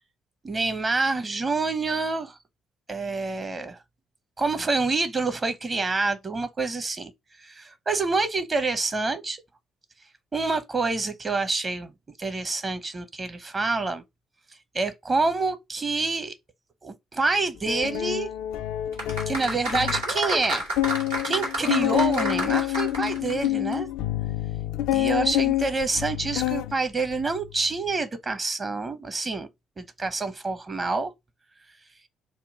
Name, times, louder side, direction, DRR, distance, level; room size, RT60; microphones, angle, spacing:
voice 1, 0.4-2.4 2.9-3.8 4.4-7.1 7.4-9.4 10.3-11.9 12.2-14.0 14.7-16.3 16.8-18.3 19.3-20.7 21.2-23.9 24.9-29.5 29.8-31.1, right 3 dB, 35° right, 0.8 m, -27 dB
sound 1, 17.7-20.1 20.4-20.5 20.8-26.8 27.1-27.5, left 14 dB, 70° left, 0.3 m, -27 dB
sound 2, 18.9-23.5 23.7-23.8, right 1 dB, 90° right, 1.6 m, -30 dB
3.6 x 2.2 x 4.1 m
hypercardioid pair, 50°, 0 cm